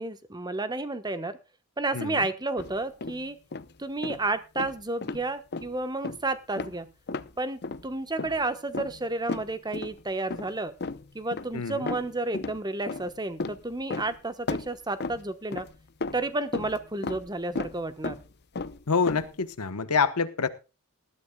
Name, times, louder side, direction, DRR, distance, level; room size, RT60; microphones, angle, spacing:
voice 1, 0.0-1.4 1.8-3.4 3.8-6.9 7.4-10.7 11.1-15.7 16.1-18.2, right 2 dB, 20° right, 1.2 m, -31 dB
voice 2, 1.9-2.3 11.5-11.9 18.9-20.5, left 5 dB, 85° left, 1.1 m, -26 dB
sound 1, 2.6-3.2 3.5-3.7 4.0-4.2 4.6-5.3 5.5-5.7 6.0-6.2 6.6-6.8 7.1-7.3 7.6-7.9 8.2-8.5 8.7-10.0 10.3-10.6 10.8-11.5 11.9-12.6 12.9-14.2 14.5-15.8 16.0-17.3 17.6-17.8 18.0-18.3 18.6-19.3, left 3 dB, 50° left, 0.7 m, -34 dB
19.5 x 12.5 x 2.3 m
head